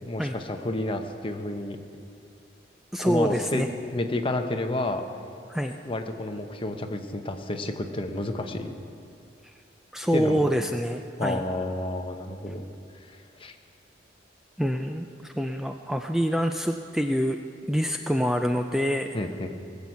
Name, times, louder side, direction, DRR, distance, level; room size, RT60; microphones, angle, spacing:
voice 1, 0.0-1.8 3.0-3.7 3.9-5.0 5.8-8.7 10.1-10.4 11.2-12.6 13.0-13.6 19.1-19.5, left 1 dB, 30° left, 5 dB, 0.9 m, -30 dB
voice 2, 2.9-3.7 5.5-5.8 9.4-9.5 9.9-11.4 14.6-17.4 17.7-19.1, equal, ahead, 5 dB, 0.3 m, -26 dB
19.5 x 7.9 x 7.1 m, 2.5 s
head